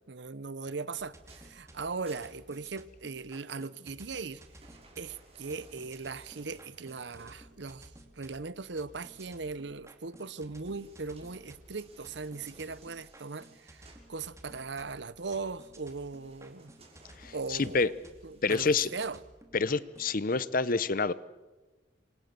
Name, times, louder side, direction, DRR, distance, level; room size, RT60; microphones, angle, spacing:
voice 1, 0.1-4.4 4.7-16.7 17.3-17.9 18.2-19.2, right 4 dB, 65° right, 0.8 m, -39 dB
sound 1, 1.0-20.1, right 1 dB, 15° right, 2.6 m, -55 dB
sound 2, 1.1-3.0 3.9-7.8 10.3-14.1 15.6-19.1 19.6-19.7, right 2 dB, 35° right, 6.1 m, -60 dB
voice 2, 17.2-17.9 18.4-18.9 19.5-21.1, left 4 dB, 50° left, 0.8 m, -27 dB
27.5 x 25.0 x 6.9 m
head